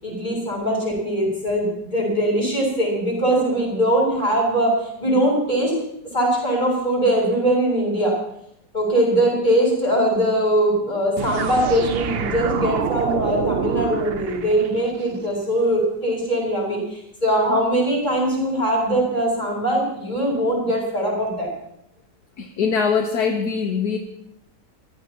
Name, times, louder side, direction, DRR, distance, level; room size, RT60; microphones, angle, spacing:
voice 1, 0.0-5.8 6.1-8.2 8.7-21.5, right 1 dB, 25° left, -3 dB, 7.6 m, -21 dB
sound 1, 11.2-15.1, right 6 dB, 50° right, 0.7 m, -26 dB
voice 2, 22.4-24.0, left 6 dB, 65° left, 4 dB, 1.6 m, -22 dB
25.5 x 15.5 x 3.0 m, 0.75 s
omnidirectional pair, 1.8 m